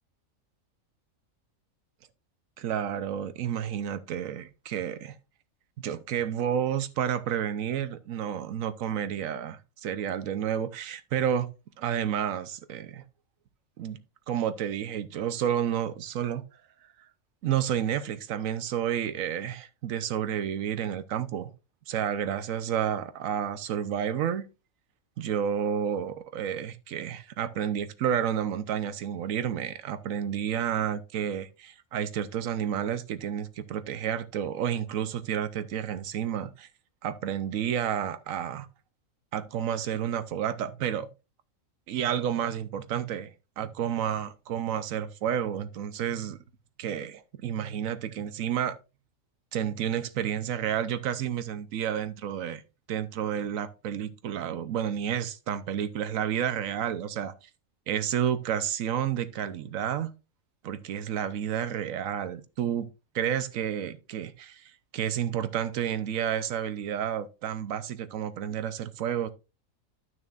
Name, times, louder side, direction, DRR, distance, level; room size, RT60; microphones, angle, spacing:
voice 1, 2.6-5.1 5.8-11.5 11.8-13.0 13.8-14.0 14.3-16.4 17.4-21.5 21.9-24.5 25.2-36.7 37.0-38.7 39.3-41.1 41.9-46.4 46.8-48.8 49.5-52.6 52.9-57.3 57.9-60.1 60.6-62.9 63.1-69.3, right 9 dB, 75° right, 1.2 m, -30 dB
12.5 x 6.3 x 2.5 m
omnidirectional pair, 1.4 m